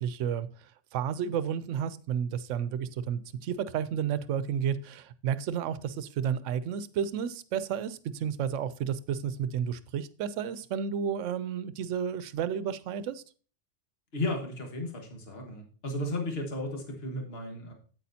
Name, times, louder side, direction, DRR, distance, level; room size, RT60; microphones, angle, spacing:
voice 1, 0.0-13.2, right 8 dB, 80° right, 0.9 m, -32 dB
voice 2, 14.1-17.7, left 1 dB, 55° left, 1.7 m, -34 dB
8.6 x 8.3 x 2.7 m
omnidirectional pair, 1.3 m